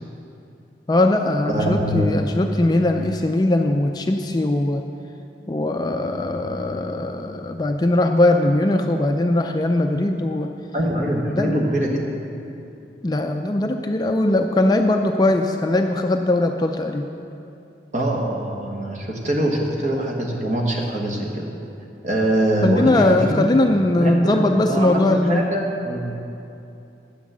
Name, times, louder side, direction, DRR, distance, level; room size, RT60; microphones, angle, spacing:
voice 1, 0.9-4.8 5.5-10.5 11.3-11.6 13.0-17.1 22.6-25.5, left 1 dB, 25° left, 5 dB, 0.3 m, -20 dB
voice 2, 1.5-2.4 10.7-12.1 17.9-21.4 22.0-23.5 24.0-26.1, right 1 dB, 40° right, -1 dB, 1.4 m, -23 dB
10.0 x 6.2 x 7.3 m, 2.7 s
head